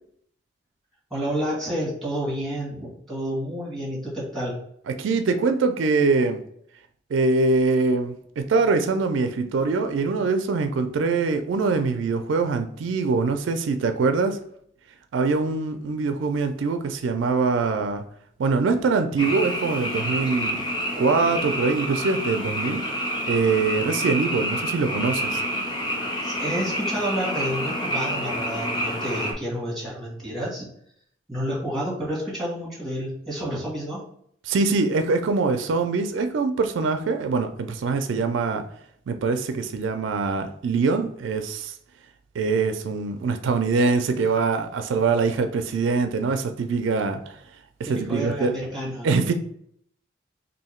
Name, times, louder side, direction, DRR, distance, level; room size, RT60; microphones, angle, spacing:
voice 1, 1.1-4.5 26.2-30.7 31.3-34.0 47.9-49.1, equal, ahead, 1.3 m, -30 dB
voice 2, 4.9-6.4 7.1-14.4 15.1-18.0 18.4-20.6 21.0-22.8 23.3-25.4 34.4-38.6 39.1-41.7 42.3-47.4 47.8-48.5 49.0-49.3, right 4 dB, 75° right, 0.4 m, -23 dB
Frog, 19.2-29.3, equal, 25° left, 0.6 m, -28 dB
2.8 x 2.6 x 4.3 m
head